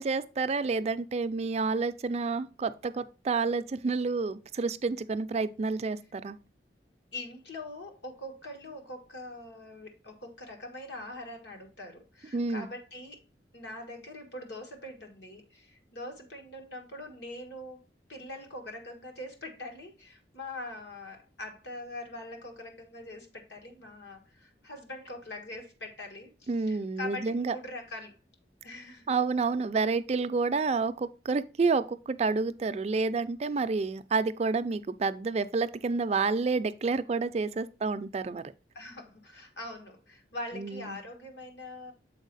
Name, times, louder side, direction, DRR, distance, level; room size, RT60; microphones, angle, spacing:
voice 1, 0.0-6.4 12.3-12.7 26.5-27.6 29.1-38.4 40.5-41.0, right 4 dB, 40° right, 0.4 m, -29 dB
voice 2, 7.1-13.2 13.5-17.8 18.1-28.2 28.6-29.1 38.7-41.9, left 1 dB, 75° left, 1.6 m, -43 dB
7.1 x 4.4 x 4.0 m
head